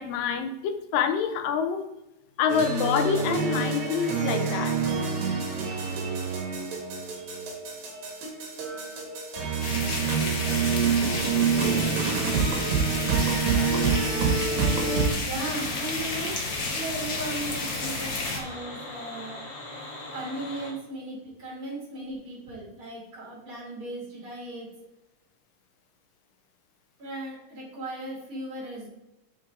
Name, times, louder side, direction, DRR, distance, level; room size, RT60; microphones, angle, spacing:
voice 1, 0.0-1.8 2.4-4.8, left 7 dB, 85° left, 8 dB, 2.5 m, -26 dB
sound 1, 2.5-15.1, right 5 dB, 65° right, 2.9 m, -27 dB
sound 2, 9.6-18.4, left 3 dB, 65° left, 0.9 m, -32 dB
voice 2, 15.2-16.4 16.7-19.4 20.1-24.7 27.0-28.9, right 1 dB, 40° right, -5 dB, 3.7 m, -36 dB
sound 3, 15.4-20.7, left 2 dB, 50° left, 3.1 m, -40 dB
7.4 x 7.1 x 3.7 m, 0.94 s
omnidirectional pair, 3.9 m